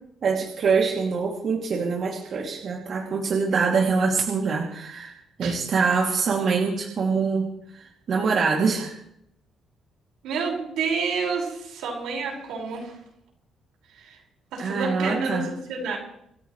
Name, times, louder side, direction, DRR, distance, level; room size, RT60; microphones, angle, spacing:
voice 1, 0.2-7.4 7.7-9.0 14.6-15.4, right 5 dB, 60° right, -2 dB, 2.9 m, -24 dB
voice 2, 10.2-13.0 13.9-14.2 14.5-15.4 15.7-16.0, right 4 dB, 90° right, -1 dB, 5.8 m, -29 dB
27.0 x 13.5 x 3.3 m, 0.73 s
cardioid pair, 90°, 0 cm